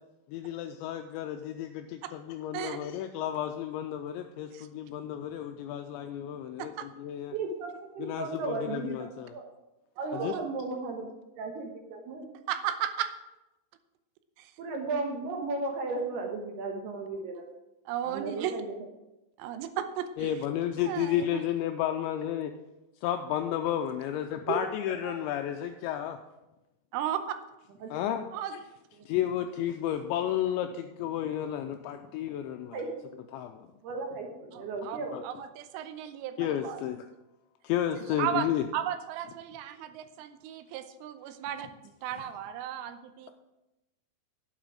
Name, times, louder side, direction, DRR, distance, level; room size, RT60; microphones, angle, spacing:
voice 1, 0.3-7.3 8.0-9.3 10.1-10.3 20.2-22.5 23.0-26.2 27.9-28.6 29.1-32.8 33.3-33.7 35.1-35.2 36.4-37.1 37.6-38.6, left 11 dB, 85° left, 6 dB, 2.6 m, -32 dB
voice 2, 7.3-9.5 10.0-11.1 11.3-12.2 14.6-17.4 18.0-18.7 24.5-24.7 25.0-25.2 27.8-27.9 32.7-32.9 33.8-35.2, right 3 dB, 65° right, 2 dB, 2.8 m, -35 dB
voice 3, 10.0-10.5 12.5-13.1 14.4-14.5 17.9-18.6 19.4-20.3 20.8-21.4 26.9-27.4 28.3-28.6 34.5-35.0 35.2-36.8 38.0-38.5 38.7-43.3, right 10 dB, 85° right, 9 dB, 3.3 m, -35 dB
11.5 x 9.0 x 4.8 m, 0.97 s
omnidirectional pair, 5.7 m